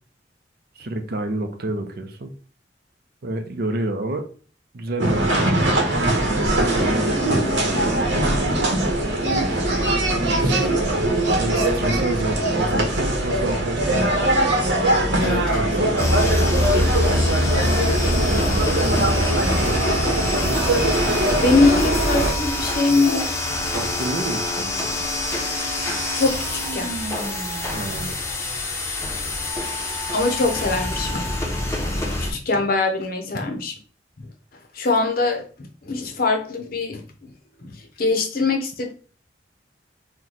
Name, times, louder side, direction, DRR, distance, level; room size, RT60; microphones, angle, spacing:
voice 1, 0.8-2.3 3.2-4.3 4.7-5.8 6.2-8.1 9.2-9.6 9.9-11.0 11.4-14.5 15.0-16.0 18.0-19.8 23.7-24.9 27.7-28.2, right 2 dB, 55° right, 6 dB, 0.5 m, -30 dB
sound 1, 5.0-22.3, right 1 dB, 80° right, 0.9 m, -21 dB
sound 2, 16.0-32.3, left 1 dB, 15° left, 0.7 m, -25 dB
voice 2, 17.5-18.1 18.4-18.5 21.2-23.3 26.2-26.9 30.1-31.3 32.3-33.7 34.2-34.3 34.7-37.3 37.6-38.9, left 3 dB, 55° left, 4 dB, 0.6 m, -23 dB
3.0 x 2.2 x 3.8 m, 0.39 s
head